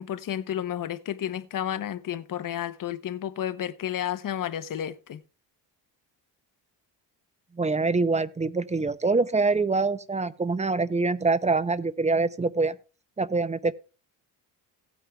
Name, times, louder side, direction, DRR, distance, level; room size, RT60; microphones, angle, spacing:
voice 1, 0.0-5.2, left 10 dB, 50° left, 0.9 m, -31 dB
voice 2, 7.6-12.8 13.2-13.7, right 3 dB, 15° right, 0.6 m, -25 dB
17.0 x 9.1 x 2.3 m
cardioid pair, 100°, 43 cm